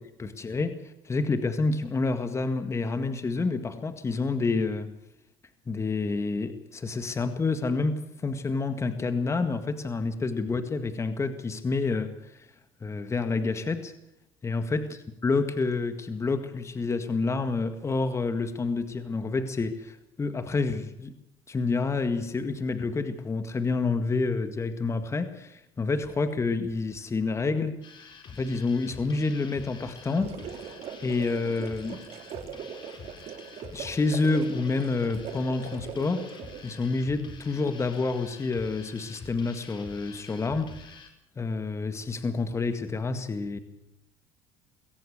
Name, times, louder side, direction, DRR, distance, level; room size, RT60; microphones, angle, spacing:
voice 1, 0.2-4.9 5.7-12.5 12.8-13.9 14.4-21.1 21.5-27.8 28.3-30.3 31.0-32.0 33.7-36.3 36.6-40.9 41.4-43.6, left 3 dB, 25° left, 9 dB, 1.9 m, -28 dB
sound 1, 27.8-41.1, left 5 dB, 40° left, 4.8 m, -47 dB
sound 2, 30.0-36.8, right 8 dB, 55° right, 3.2 m, -41 dB
23.0 x 17.0 x 6.7 m, 0.81 s
supercardioid pair, 95°, 12 cm